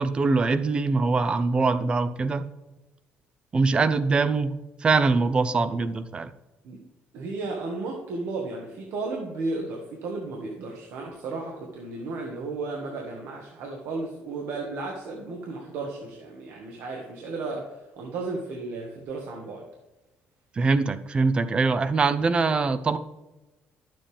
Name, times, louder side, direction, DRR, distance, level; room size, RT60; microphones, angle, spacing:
voice 1, 0.0-2.5 3.5-4.5 4.8-6.3 20.6-23.0, right 4 dB, 25° right, 13 dB, 0.6 m, -23 dB
voice 2, 7.1-19.7, right 3 dB, 70° right, 0 dB, 1.6 m, -34 dB
11.5 x 7.7 x 3.5 m, 1.0 s
cardioid pair, 170°, 4 cm